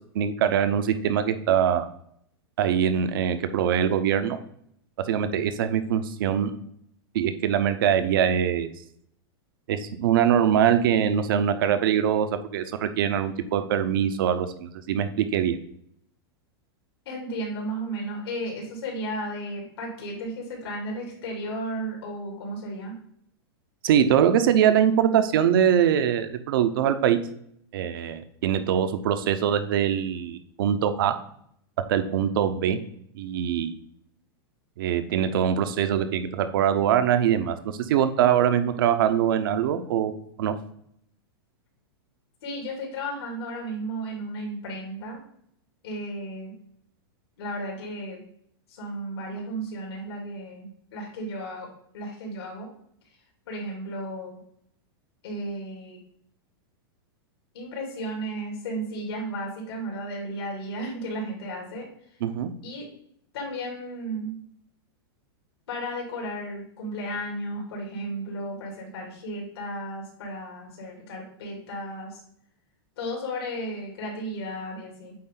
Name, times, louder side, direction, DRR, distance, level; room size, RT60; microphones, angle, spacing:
voice 1, 0.1-1.8 2.6-4.4 5.1-6.5 7.1-8.7 9.7-15.6 23.8-27.2 27.7-31.2 31.9-32.8 33.1-33.7 34.8-40.1 40.4-40.6 62.2-62.5, right 9 dB, 60° right, 10 dB, 0.8 m, -23 dB
voice 2, 17.0-23.0 42.4-45.2 45.8-46.5 47.4-48.2 48.7-52.7 53.5-54.4 55.2-56.0 57.5-61.9 62.6-62.9 63.3-64.3 65.7-72.2 73.0-75.1, right 1 dB, 75° left, -2 dB, 3.1 m, -34 dB
8.6 x 3.8 x 3.8 m, 0.69 s
supercardioid pair, 160°, 13 cm